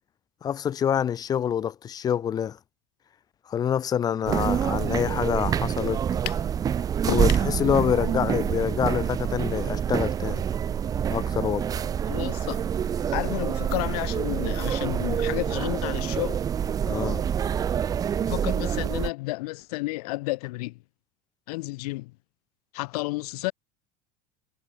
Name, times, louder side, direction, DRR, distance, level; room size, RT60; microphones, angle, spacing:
voice 1, 0.4-2.6 3.5-6.0 7.0-10.4 11.1-11.7 16.9-17.2, left 9 dB, 20° left, 0.8 m, -26 dB
sound 1, 4.2-19.1, right 8 dB, 20° right, 0.8 m, -27 dB
sound 2, 6.3-6.5 7.1-7.5, left 31 dB, 50° left, 0.5 m, -32 dB
voice 2, 12.1-12.7 13.1-16.4 18.2-20.8 21.5-22.1 22.7-23.5, left 22 dB, 85° left, 2.2 m, -31 dB
cardioid pair, 175°, 19 cm